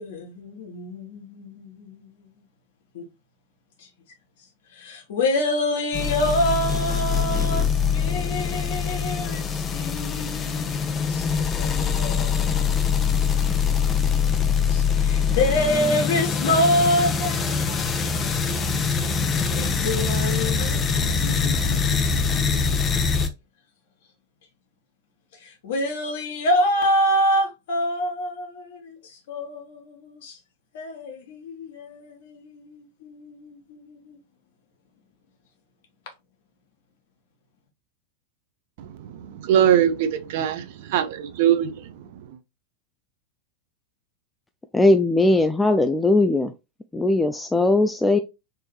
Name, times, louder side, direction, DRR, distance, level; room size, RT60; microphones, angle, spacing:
voice 1, 0.0-2.3 2.9-3.1 3.8-3.9 4.7-14.2 14.7-18.5 19.3-22.9 25.3-30.4 30.7-34.2, left 1 dB, 55° left, 1.4 m, -27 dB
sound 1, 5.9-23.3, left 6 dB, 25° left, 0.7 m, -23 dB
voice 2, 38.8-42.4, right 10 dB, 50° right, 0.6 m, -23 dB
voice 3, 44.7-46.5 46.9-48.2, left 2 dB, 10° left, 0.3 m, -19 dB
4.6 x 3.2 x 3.1 m
figure-of-eight pair, 90°, 0 cm